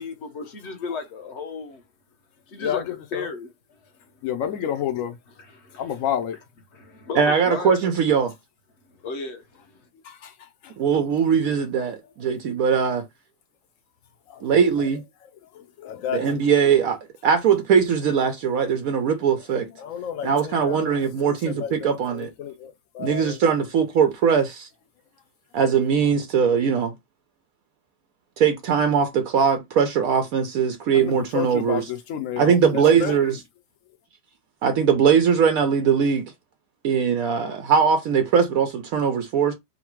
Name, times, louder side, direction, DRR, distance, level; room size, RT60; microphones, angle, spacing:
voice 1, 0.0-1.8 2.5-2.8 3.1-3.5 5.5-5.8 6.7-7.7 8.9-9.8, left 4 dB, 50° left, 0.9 m, -34 dB
voice 2, 2.6-3.3 4.2-5.2 5.8-6.4 10.0-10.7 14.3-14.5 14.8-14.9 15.5-16.5 19.7-23.4 30.9-33.2, left 9 dB, 85° left, 0.7 m, -31 dB
voice 3, 7.1-8.3 10.8-13.0 14.4-15.0 16.1-19.7 20.2-22.3 23.0-24.7 25.5-26.9 28.4-31.8 32.4-33.4 34.6-36.3 36.8-39.5, right 7 dB, 85° right, 0.7 m, -21 dB
4.0 x 2.2 x 4.4 m
omnidirectional pair, 2.1 m